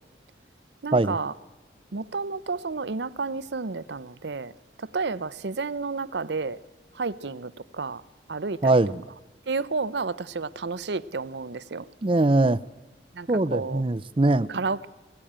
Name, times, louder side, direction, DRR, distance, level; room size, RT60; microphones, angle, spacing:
voice 1, 0.8-1.3 1.9-4.5 4.8-6.6 6.9-8.0 8.3-8.8 9.5-11.9 13.1-13.8 14.5-14.9, right 4 dB, 70° right, 0.7 m, -31 dB
voice 2, 8.6-9.0 12.0-12.6 13.3-14.5, right 2 dB, 30° right, 0.6 m, -21 dB
19.0 x 17.5 x 8.8 m
head